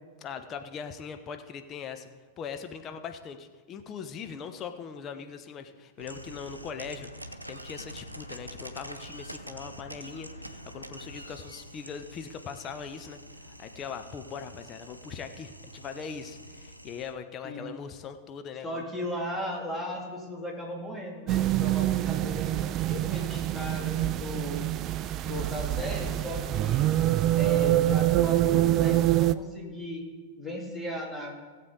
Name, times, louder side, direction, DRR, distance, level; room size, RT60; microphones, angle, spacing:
voice 1, 0.2-2.1 2.4-18.8, left 6 dB, 30° left, 7 dB, 0.8 m, -41 dB
sound 1, 6.0-17.1, right 1 dB, 85° right, 0.6 m, -45 dB
voice 2, 17.4-17.8 18.6-24.6 25.2-26.9 27.3-30.0 30.4-31.3, left 1 dB, 5° left, -2 dB, 2.4 m, -37 dB
sound 2, 21.3-29.4, right 14 dB, 35° right, 0.3 m, -25 dB
17.0 x 7.7 x 3.9 m, 1.4 s
figure-of-eight pair, 90°, 0 cm